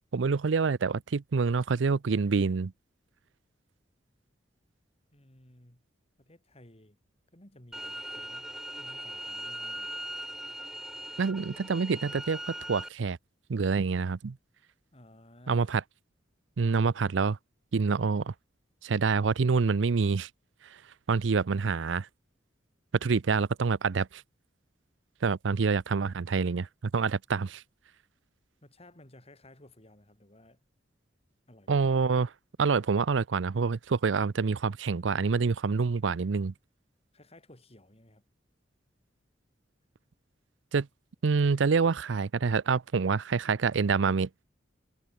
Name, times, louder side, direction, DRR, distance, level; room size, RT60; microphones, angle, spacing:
voice 1, 0.1-2.7 11.2-13.2 13.5-14.4 15.5-15.8 16.6-17.4 17.7-18.3 18.8-20.3 21.1-22.1 23.0-24.2 25.2-27.6 31.7-32.3 32.6-36.5 40.7-40.9 41.2-44.3, right 5 dB, 75° right, 0.5 m, -27 dB
voice 2, 5.1-5.8 6.2-7.0 7.3-9.9 14.9-15.7 28.6-30.6 31.5-31.9 37.1-38.2, left 1 dB, 35° left, 4.6 m, -56 dB
sound 1, 7.7-12.9, equal, 5° right, 0.8 m, -40 dB
head